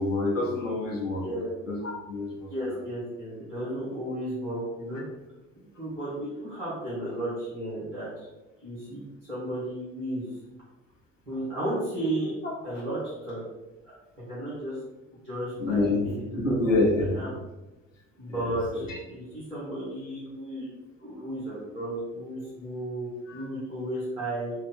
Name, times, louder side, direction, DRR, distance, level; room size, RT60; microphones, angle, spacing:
voice 1, 0.0-1.3 1.7-2.5 15.6-17.2 18.9-19.0 23.3-23.4, left 2 dB, 90° left, -2 dB, 0.7 m, -26 dB
voice 2, 1.2-1.5 2.5-5.0 5.8-8.3 8.6-10.3 11.3-12.3 12.6-13.4 14.3-14.8 15.2-17.3 18.2-20.7 21.0-24.5, right 1 dB, 90° right, -10 dB, 1.2 m, -34 dB
3.5 x 2.4 x 3.5 m, 1.0 s
figure-of-eight pair, 55°, 37 cm